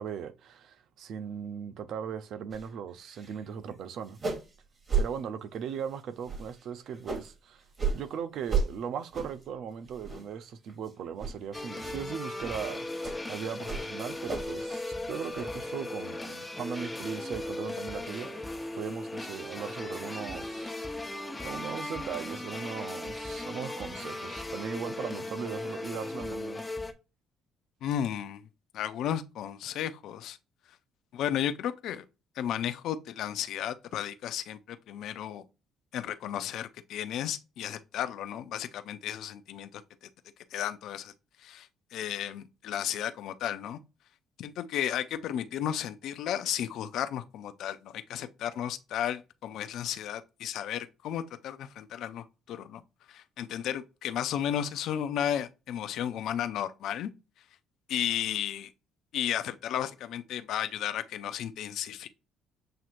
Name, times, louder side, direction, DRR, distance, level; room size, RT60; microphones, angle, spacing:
voice 1, 0.0-4.2 5.0-7.6 7.9-12.9 13.3-18.5 18.8-20.7 21.4-26.6, right 7 dB, 65° right, 0.5 m, -38 dB
sound 1, 2.5-2.7 3.0-3.4 3.7-3.8 4.1-4.5 4.9-5.1 5.6-5.8 6.2-7.3 7.7-8.0 8.5-8.7 9.1-9.4 9.9-10.4 10.7-10.9 11.2-11.4 11.8-12.0 12.4-12.6 13.0-13.2 13.6-14.6 14.9-15.4, right 5 dB, 40° right, 1.8 m, -32 dB
sound 2, 11.5-26.9, left 2 dB, 15° left, 0.9 m, -37 dB
voice 2, 27.8-28.4 28.7-30.4 31.1-32.0 32.4-35.4 35.9-39.8 40.5-41.1 41.4-43.8 44.4-52.8 53.1-57.1 57.9-58.7 59.1-62.1, left 10 dB, 65° left, 0.5 m, -33 dB
7.6 x 2.7 x 2.5 m
hypercardioid pair, 55°, 0 cm